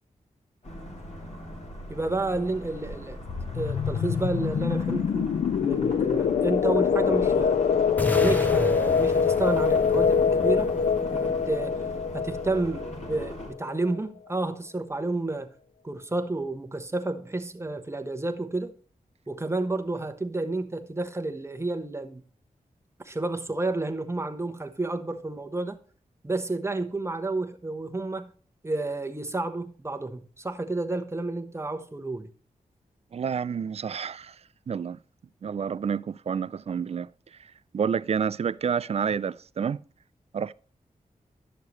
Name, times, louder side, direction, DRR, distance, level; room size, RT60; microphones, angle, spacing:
sound 1, 0.6-13.5, left 1 dB, 50° left, 2.7 m, -38 dB
voice 1, 1.9-3.2 3.5-5.3 5.6-7.6 8.1-10.8 11.2-11.8 12.1-15.5 15.8-18.7 19.3-22.2 23.0-25.8 26.2-28.3 28.6-32.3, right 2 dB, 20° right, 1.0 m, -30 dB
sound 2, 3.3-13.8, left 6 dB, 75° left, 0.4 m, -24 dB
sound 3, 8.0-12.0, left 1 dB, 10° left, 0.9 m, -35 dB
voice 2, 33.1-34.3 34.7-35.0 35.4-37.1 37.7-39.8 40.3-40.5, right 7 dB, 45° right, 0.4 m, -29 dB
11.0 x 6.7 x 3.1 m
cardioid pair, 65°, 14 cm